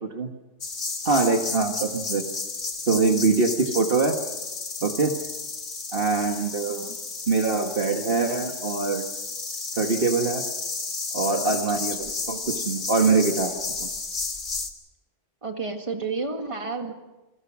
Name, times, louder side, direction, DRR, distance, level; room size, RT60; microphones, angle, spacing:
sound 1, 0.6-14.7, left 4 dB, 65° left, 2.2 m, -32 dB
voice 1, 1.0-2.2 2.9-4.2 4.8-5.1 5.9-6.8 7.3-9.0 9.8-10.4 11.1-12.0 12.3-13.5 13.8-13.9, right 4 dB, 50° right, 4 dB, 1.8 m, -23 dB
voice 2, 11.7-12.1 15.4-16.9, right 4 dB, 25° right, 4 dB, 2.0 m, -32 dB
29.5 x 21.0 x 6.1 m, 1.1 s
omnidirectional pair, 1.3 m